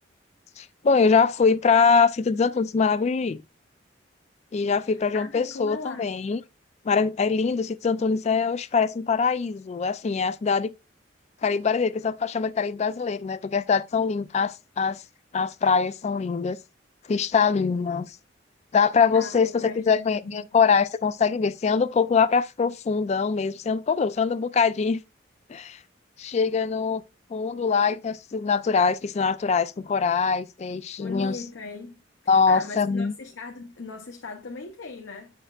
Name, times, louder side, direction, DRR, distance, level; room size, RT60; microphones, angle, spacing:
voice 1, 0.6-3.4 4.5-6.4 6.9-10.7 11.4-15.0 15.3-16.6 17.1-18.1 18.7-25.0 25.5-25.8 26.2-27.0 27.3-31.4 32.3-33.1, left 5 dB, 35° left, 0.3 m, -23 dB
voice 2, 4.8-6.1 19.1-20.6 31.0-35.3, left 3 dB, 90° left, 0.9 m, -39 dB
7.7 x 6.5 x 2.4 m
head